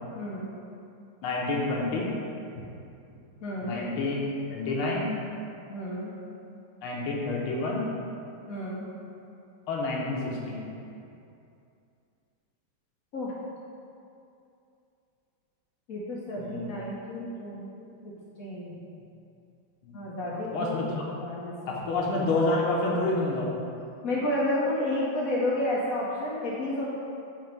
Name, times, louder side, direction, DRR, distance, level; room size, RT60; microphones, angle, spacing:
voice 1, 0.1-0.5 3.4-3.8 5.7-6.2 8.5-8.9 13.1-13.3 15.9-18.8 19.9-20.8 21.2-21.8 24.0-26.9, left 1 dB, 65° left, -6 dB, 0.9 m, -31 dB
voice 2, 1.2-2.1 3.6-4.2 4.5-5.1 6.8-7.9 9.7-10.7 16.4-16.7 19.8-20.0 20.5-21.0 21.7-23.5, left 2 dB, 85° left, -3 dB, 1.7 m, -28 dB
5.8 x 3.2 x 5.2 m, 2.6 s
omnidirectional pair, 2.2 m